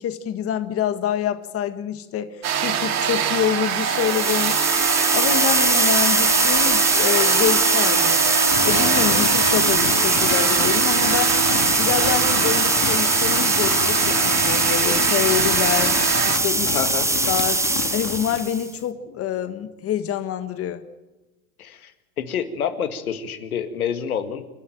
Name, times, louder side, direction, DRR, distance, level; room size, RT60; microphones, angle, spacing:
voice 1, 0.0-8.2 8.6-11.4 11.8-15.9 16.2-16.8 17.3-20.8, left 9 dB, 35° left, 10 dB, 1.6 m, -26 dB
sound 1, 2.4-16.4, right 8 dB, 40° right, 2.8 m, -24 dB
sound 2, 3.7-18.7, right 2 dB, 5° right, 1.4 m, -21 dB
sound 3, 8.5-18.5, left 10 dB, 50° left, 2.0 m, -31 dB
voice 2, 16.7-17.1 21.6-21.9 22.2-24.5, left 8 dB, 85° left, 8 dB, 2.1 m, -27 dB
28.0 x 11.5 x 8.9 m, 1.1 s
hypercardioid pair, 100°, 42 cm